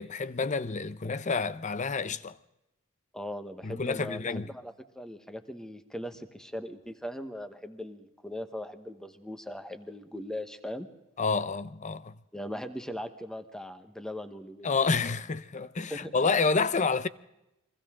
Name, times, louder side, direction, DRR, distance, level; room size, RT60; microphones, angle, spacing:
voice 1, 0.0-2.4 3.6-4.5 11.2-12.2 14.6-17.1, left 4 dB, 35° left, 0.7 m, -29 dB
voice 2, 3.1-10.9 12.3-14.8 15.9-16.1, left 1 dB, 5° left, 1.2 m, -39 dB
29.5 x 23.0 x 3.7 m
head